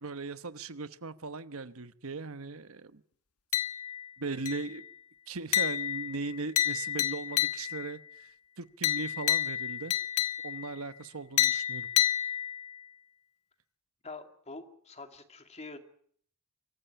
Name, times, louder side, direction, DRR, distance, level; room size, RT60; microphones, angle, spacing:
voice 1, 0.0-3.0 4.2-4.8 5.3-8.3 8.6-9.9 10.4-11.9, right 3 dB, 65° right, 13 dB, 1.1 m, -38 dB
sound 1, 3.5-4.1 4.5-4.9 5.5-7.9 8.8-10.7 11.4-12.8, left 11 dB, 80° left, 1.3 m, -30 dB
voice 2, 14.0-15.8, left 3 dB, 30° left, 7 dB, 2.3 m, -45 dB
25.5 x 15.0 x 10.0 m, 0.62 s
head